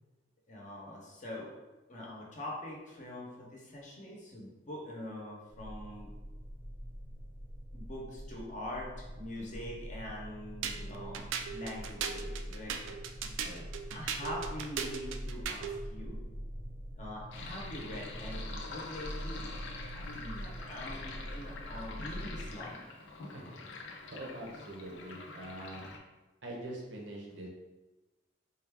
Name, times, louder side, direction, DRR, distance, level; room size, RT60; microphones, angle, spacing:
voice 1, 0.5-1.5 1.9-6.1 7.7-13.0 13.9-16.2 17.0-19.5 19.9-22.8, left 1 dB, 40° left, -3 dB, 0.7 m, -44 dB
sound 1, 5.5-22.6, equal, 25° right, 0.5 m, -44 dB
voice 2, 9.4-9.7 13.4-13.6 23.3-23.4 24.0-25.9 26.4-27.5, right 1 dB, 70° right, -1 dB, 0.8 m, -44 dB
sound 2, 10.6-15.8, right 6 dB, 90° right, 0.3 m, -38 dB
Sink (filling or washing), 17.3-26.0, left 3 dB, 75° left, 0.5 m, -46 dB
3.9 x 2.3 x 3.4 m, 1.2 s
head